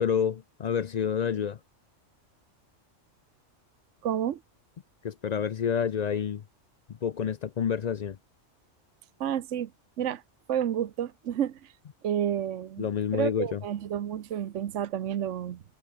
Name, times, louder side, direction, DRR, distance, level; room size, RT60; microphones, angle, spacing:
voice 1, 0.0-1.6 5.0-6.4 7.0-8.2 12.8-13.6, left 7 dB, 55° left, 0.4 m, -28 dB
voice 2, 4.0-4.4 9.2-9.7 10.0-10.2 10.5-11.7 12.0-12.9 13.1-15.6, right 10 dB, 75° right, 1.2 m, -30 dB
omnidirectional pair, 1.3 m